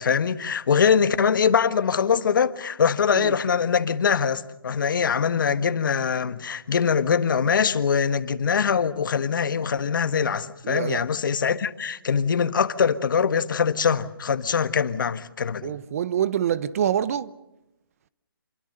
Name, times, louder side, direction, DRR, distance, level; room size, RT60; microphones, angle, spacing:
voice 1, 0.0-15.8, left 6 dB, 60° left, 1.4 m, -23 dB
voice 2, 10.6-11.0 15.6-17.3, right 9 dB, 40° right, 0.8 m, -26 dB
28.0 x 23.5 x 6.7 m
hypercardioid pair, 155°, 12 cm